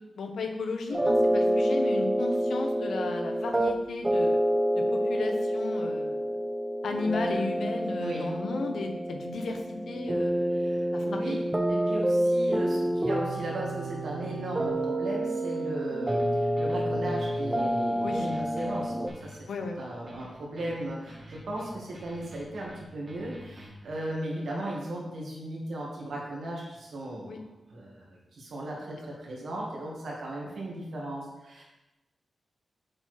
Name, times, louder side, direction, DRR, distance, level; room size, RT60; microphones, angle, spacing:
voice 1, 0.2-4.4 5.1-6.3 6.8-9.6 9.9-11.4 18.0-18.3 19.5-19.9 27.3-27.4, left 3 dB, 90° left, 4 dB, 1.0 m, -34 dB
sound 1, 0.9-19.1, right 1 dB, 15° right, 0.6 m, -28 dB
voice 2, 10.5-11.4 11.7-19.5 19.8-27.4 27.7-31.6, right 1 dB, 80° right, -3 dB, 2.2 m, -36 dB
sound 2, 16.1-24.0, right 1 dB, 30° right, 1.6 m, -49 dB
7.5 x 4.7 x 4.6 m, 1.0 s
wide cardioid pair, 150°, 0 cm